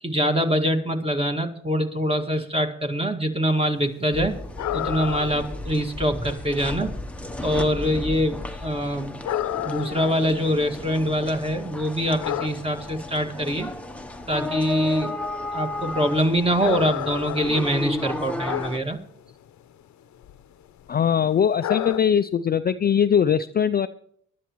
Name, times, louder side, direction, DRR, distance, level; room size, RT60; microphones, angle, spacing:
voice 1, 0.0-4.4 4.7-6.9 7.4-9.1 9.6-13.7 14.3-15.2 15.5-19.0, equal, 20° right, 5 dB, 1.9 m, -24 dB
sound 1, 4.1-18.8, left 2 dB, 5° left, 0.9 m, -34 dB
sound 2, 4.6-5.5 5.8-5.9 6.3-6.7 7.7-7.9 8.5-8.6 9.2-11.4 11.7-13.0 13.5-13.6 14.0-14.1 14.3-14.6 14.9-15.2 15.8-19.0 19.3-19.5 20.0-20.4 20.7-21.0 21.6-22.0, left 11 dB, 65° left, 0.8 m, -30 dB
voice 2, 20.9-23.9, left 8 dB, 30° left, 10 dB, 0.4 m, -21 dB
21.5 x 12.0 x 3.1 m, 0.65 s
cardioid pair, 90°, 30 cm